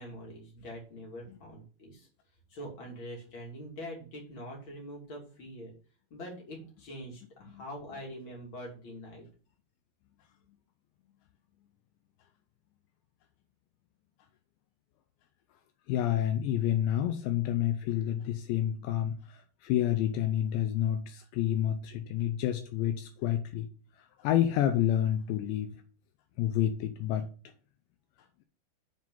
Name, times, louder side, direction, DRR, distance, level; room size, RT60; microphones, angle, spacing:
voice 1, 0.0-2.1 2.5-5.7 6.1-9.2, equal, 35° left, 2.5 m, -44 dB
voice 2, 15.9-23.7 24.2-25.7 26.4-27.3, left 11 dB, 80° left, 2.8 m, -29 dB
7.7 x 4.8 x 5.5 m
omnidirectional pair, 5.3 m